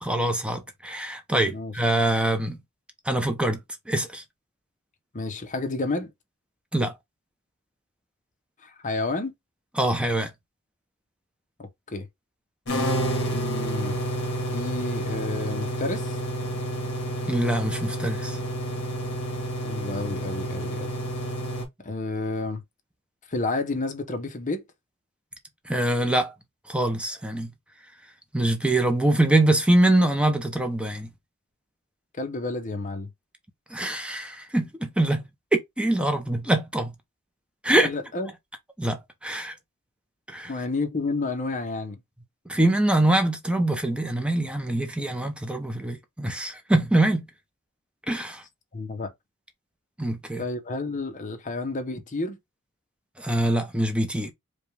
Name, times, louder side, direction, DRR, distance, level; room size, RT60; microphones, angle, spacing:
voice 1, 0.0-2.6 3.1-3.6 3.9-4.2 6.7-6.9 9.8-10.3 17.2-18.4 25.7-26.3 26.7-27.5 28.3-31.1 33.7-35.3 35.8-36.9 37.6-37.9 38.8-39.5 40.3-40.5 42.5-47.2 48.1-48.4 50.0-50.4 53.2-54.3, right 1 dB, 5° right, 0.7 m, -24 dB
voice 2, 5.1-6.1 8.6-9.3 11.6-12.1 13.3-14.0 14.5-16.2 19.6-20.9 21.8-22.6 23.3-24.6 32.1-33.1 37.8-38.3 40.5-42.0 48.7-49.1 50.4-52.4, left 3 dB, 35° left, 0.8 m, -30 dB
sound 1, 12.7-21.7, right 1 dB, 55° left, 1.6 m, -29 dB
5.0 x 2.3 x 3.3 m
head